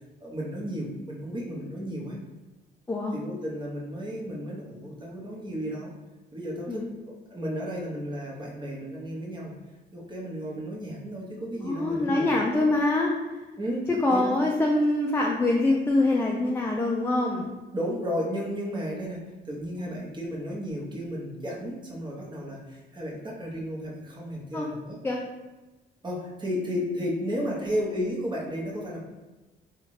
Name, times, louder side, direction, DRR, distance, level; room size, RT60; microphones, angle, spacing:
voice 1, 0.2-2.2 3.1-5.9 6.3-9.5 9.9-12.3 13.6-14.4 17.7-25.0 26.0-29.0, equal, 25° right, -3 dB, 1.0 m, -33 dB
voice 2, 11.6-13.1 13.9-17.5 19.8-19.9 24.5-24.7 25.0-25.2, left 2 dB, 10° left, -1 dB, 0.4 m, -24 dB
3.8 x 2.5 x 3.2 m, 1.1 s
cardioid pair, 90°, 20 cm